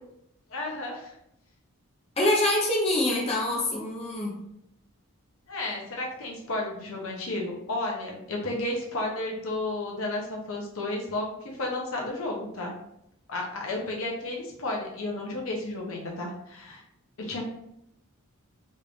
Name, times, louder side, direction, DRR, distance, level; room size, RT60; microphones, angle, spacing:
voice 1, 0.5-1.1 5.5-12.7 13.3-16.8 17.2-17.4, left 2 dB, 65° left, -1 dB, 0.8 m, -32 dB
voice 2, 2.2-4.4, left 1 dB, 30° left, -4 dB, 0.7 m, -25 dB
3.2 x 2.6 x 3.4 m, 0.78 s
head